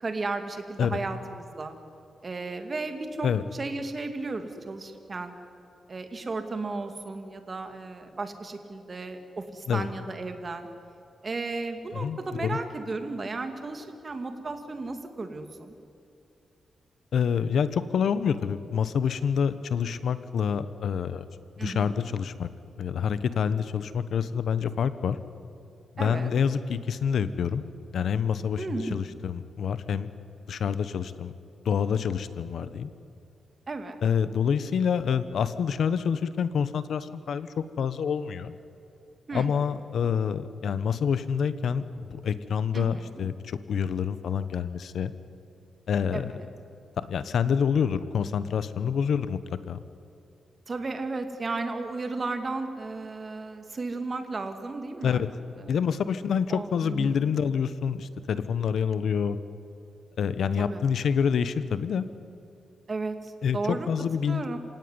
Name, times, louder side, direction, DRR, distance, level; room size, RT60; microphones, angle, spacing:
voice 1, 0.0-1.8 2.2-5.3 5.9-10.7 11.2-15.7 21.6-22.0 26.0-26.3 28.6-29.0 33.7-34.0 39.3-39.5 42.7-43.2 46.1-46.2 50.7-55.2 55.6-55.8 56.5-57.2 60.6-60.8 62.9-63.9 64.3-64.6, right 3 dB, 35° right, 7 dB, 2.4 m, -34 dB
voice 2, 11.9-12.6 17.1-21.2 21.6-22.5 22.8-25.2 25.9-27.6 27.9-30.1 30.5-31.3 31.6-32.9 34.0-38.5 39.3-45.1 45.9-46.3 47.0-49.4 49.7-49.8 55.0-55.3 55.7-59.4 60.2-62.1 63.4-64.5, left 7 dB, 75° left, 13 dB, 1.1 m, -27 dB
27.0 x 17.0 x 9.8 m, 2.6 s
cardioid pair, 110°, 0 cm